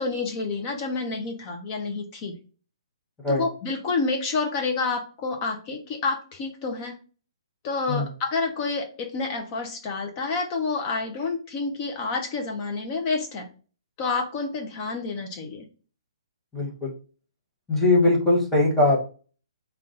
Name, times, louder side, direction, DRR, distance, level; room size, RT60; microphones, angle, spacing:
voice 1, 0.0-2.3 3.3-7.0 7.6-13.5 14.0-15.6, left 4 dB, 20° left, 4 dB, 0.5 m, -29 dB
voice 2, 16.5-16.9 17.7-19.0, left 2 dB, 5° left, -5 dB, 0.8 m, -21 dB
3.8 x 2.2 x 3.7 m, 0.37 s
hypercardioid pair, 170°, 3 cm